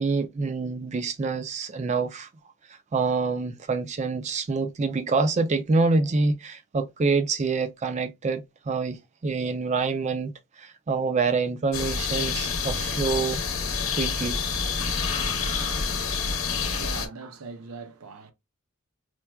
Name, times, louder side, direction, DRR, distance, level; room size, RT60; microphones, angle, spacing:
voice 1, 0.0-2.3 2.9-13.4 14.0-14.4 16.7-16.8, right 4 dB, 30° right, 0.4 m, -26 dB
sound 1, 11.7-17.1, left 5 dB, 70° left, 0.8 m, -28 dB
voice 2, 16.5-18.3, right 4 dB, 80° right, 0.6 m, -41 dB
4.4 x 2.3 x 2.2 m
head